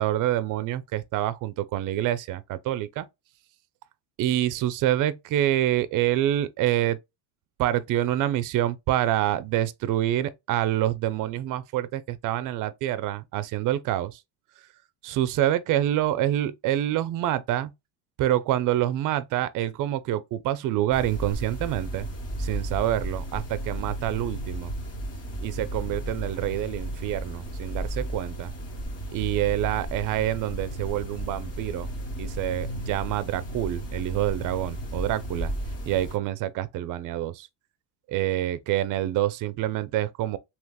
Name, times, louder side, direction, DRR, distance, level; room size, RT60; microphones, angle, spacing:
voice 1, 0.0-3.1 4.2-7.0 7.6-14.2 15.0-17.7 18.2-22.1 22.4-24.7 25.4-28.5 29.1-31.9 32.2-35.5 35.9-37.5 38.1-40.4, right 13 dB, 45° right, 0.4 m, -27 dB
sound 1, 20.9-36.2, right 1 dB, 30° left, 1.2 m, -34 dB
3.3 x 2.9 x 2.2 m
cardioid pair, 120°, 48 cm